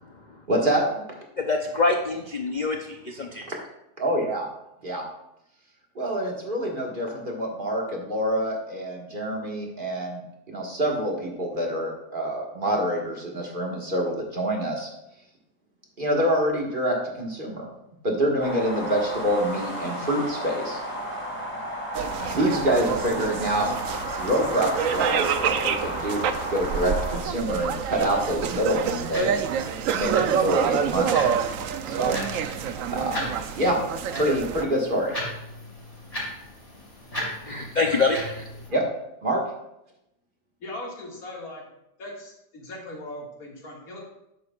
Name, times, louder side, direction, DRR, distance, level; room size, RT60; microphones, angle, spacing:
voice 1, 0.5-1.0 3.5-3.6 4.0-4.5 4.8-5.0 5.9-10.2 10.5-14.9 16.0-17.7 18.0-20.8 22.2-23.7 24.2-29.3 29.9-31.2 31.8-33.8 34.2-35.1 38.7-38.8 39.2-39.4, right 1 dB, 30° right, -1 dB, 1.7 m, -26 dB
voice 2, 1.4-3.5 37.5-38.4, left 3 dB, 75° left, 3 dB, 0.4 m, -25 dB
sound 1, 18.4-27.2, equal, 5° left, 1.8 m, -33 dB
sound 2, 21.9-34.6, right 7 dB, 65° right, 0.8 m, -27 dB
sound 3, 28.3-38.7, equal, 35° left, 4.1 m, -38 dB
voice 3, 40.6-41.6 42.0-44.0, left 1 dB, 60° left, -3 dB, 2.4 m, -39 dB
11.0 x 9.5 x 2.4 m, 0.83 s
omnidirectional pair, 1.8 m